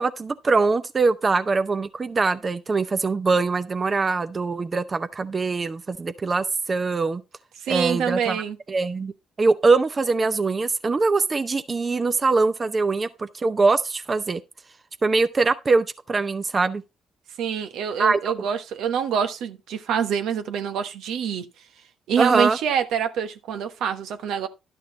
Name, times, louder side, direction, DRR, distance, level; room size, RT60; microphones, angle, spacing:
voice 1, 0.0-7.2 7.7-8.4 8.7-9.1 9.4-14.4 15.0-16.8 18.0-18.5 22.2-22.6, right 3 dB, 30° right, 0.7 m, -22 dB
voice 2, 7.6-8.6 17.4-21.5 22.1-24.5, right 7 dB, 80° right, 1.2 m, -26 dB
11.5 x 6.4 x 3.8 m
cardioid pair, 90°, 0 cm